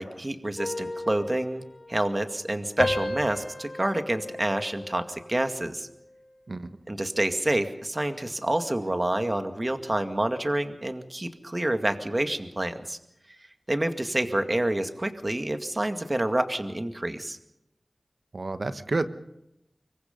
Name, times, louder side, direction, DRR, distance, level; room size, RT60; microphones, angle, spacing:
voice 1, 0.0-1.6 1.9-5.9 6.9-13.0 13.7-17.4, right 1 dB, 35° right, 7 dB, 2.1 m, -28 dB
sound 1, 0.6-2.5 2.8-5.4 5.8-6.2, left 2 dB, 65° left, 3.1 m, -35 dB
voice 2, 18.3-19.1, right 3 dB, 65° right, 10 dB, 1.5 m, -29 dB
25.0 x 23.5 x 5.4 m, 0.85 s
cardioid pair, 40°, 0 cm